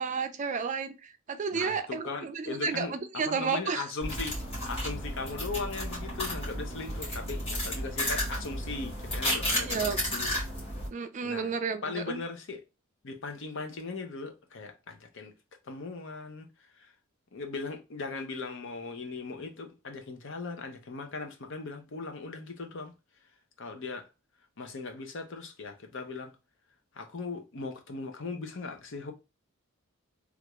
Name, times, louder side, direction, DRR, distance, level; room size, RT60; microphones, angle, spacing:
voice 1, 0.0-3.9 9.5-10.0 10.9-12.2, right 5 dB, 35° right, 0.4 m, -32 dB
voice 2, 1.5-4.4 4.7-10.4 11.2-11.5 11.8-12.6 13.0-15.3 15.7-16.5 16.8-16.9 17.3-22.9 23.6-24.1 24.6-26.3 26.9-29.1, left 4 dB, 65° left, 0.7 m, -38 dB
sound 1, 4.0-10.9, equal, 25° left, 1.7 m, -33 dB
3.3 x 2.4 x 2.9 m
head